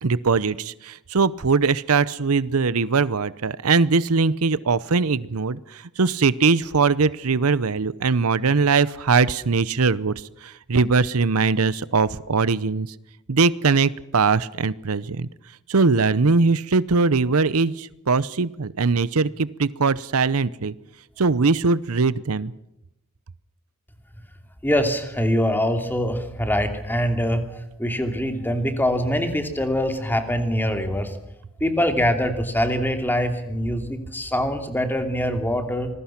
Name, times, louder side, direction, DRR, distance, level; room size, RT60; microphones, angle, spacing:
voice 1, 0.0-12.9 13.3-15.3 15.7-20.7 21.2-22.5, right 4 dB, 75° right, 18 dB, 0.7 m, -21 dB
voice 2, 24.6-31.2 31.6-35.9, equal, 10° left, 6 dB, 2.9 m, -24 dB
26.5 x 20.5 x 5.9 m, 0.82 s
head